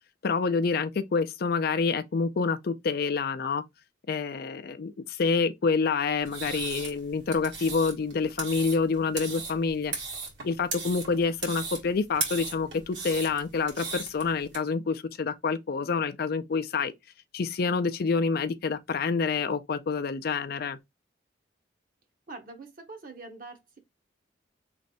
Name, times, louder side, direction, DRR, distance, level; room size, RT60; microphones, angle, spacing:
voice 1, 0.2-3.6 4.1-9.9 10.4-16.9 17.3-20.8, left 4 dB, 55° left, 0.4 m, -27 dB
sound 1, 6.2-14.6, right 4 dB, 75° right, 1.6 m, -37 dB
voice 2, 22.3-23.8, right 3 dB, 50° right, 0.9 m, -44 dB
3.2 x 2.6 x 4.0 m
head